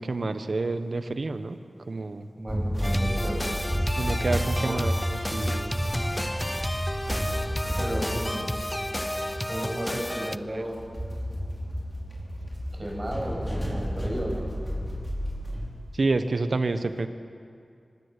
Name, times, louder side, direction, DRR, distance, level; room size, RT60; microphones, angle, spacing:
voice 1, 0.0-1.6 1.9-2.2 4.0-4.9 5.3-5.7 10.5-10.6 16.0-17.1, right 3 dB, 65° right, 9 dB, 1.4 m, -28 dB
voice 2, 2.4-3.6 4.6-4.9 7.7-8.5 9.5-10.9 12.8-14.5, right 1 dB, 30° right, -1 dB, 7.3 m, -34 dB
sound 1, 2.5-15.7, equal, 5° right, 5.1 m, -31 dB
sound 2, 2.8-10.4, left 1 dB, 10° left, 0.7 m, -32 dB
24.5 x 19.0 x 8.5 m, 2.4 s
wide cardioid pair, 70°, 0 cm